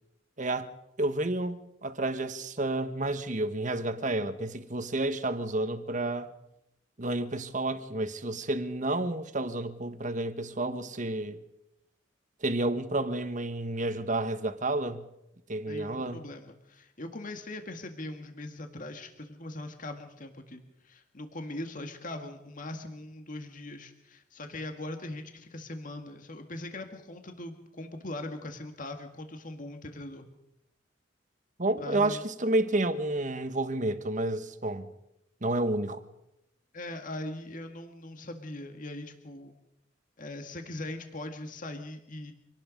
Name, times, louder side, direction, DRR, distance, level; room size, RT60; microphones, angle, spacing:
voice 1, 0.4-0.7 1.0-6.3 7.0-11.4 12.4-15.0 15.5-16.2 31.6-34.9 35.4-36.0, right 2 dB, 40° right, 1.5 m, -30 dB
voice 2, 15.7-30.3 31.8-32.2 36.7-39.6 40.2-42.3, left 1 dB, 45° left, 2.0 m, -41 dB
26.0 x 18.5 x 5.4 m
head